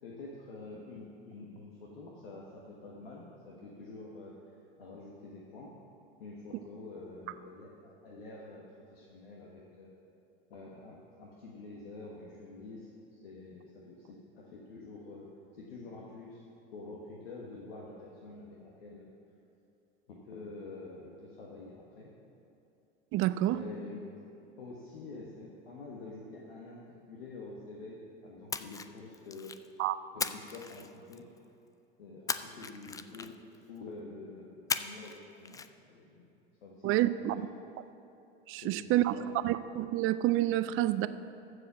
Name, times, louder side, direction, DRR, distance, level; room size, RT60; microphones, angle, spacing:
voice 1, 0.0-5.8 6.2-9.9 10.5-16.4 16.7-19.1 20.1-22.1 23.5-29.6 30.1-31.3 32.0-33.4 33.7-35.6 35.9-36.3 36.6-37.4 38.6-39.3, left 3 dB, 80° left, -3 dB, 1.3 m, -47 dB
voice 2, 23.1-23.6 29.8-30.0 36.8-37.5 38.5-39.1 39.4-41.1, right 15 dB, 45° right, 14 dB, 0.5 m, -28 dB
Splash splatter, 28.5-29.7 30.2-31.4 32.3-33.6 34.7-35.2 35.4-35.7, left 5 dB, 10° left, 0.3 m, -37 dB
14.5 x 5.0 x 6.1 m, 2.8 s
hypercardioid pair, 85°, 29 cm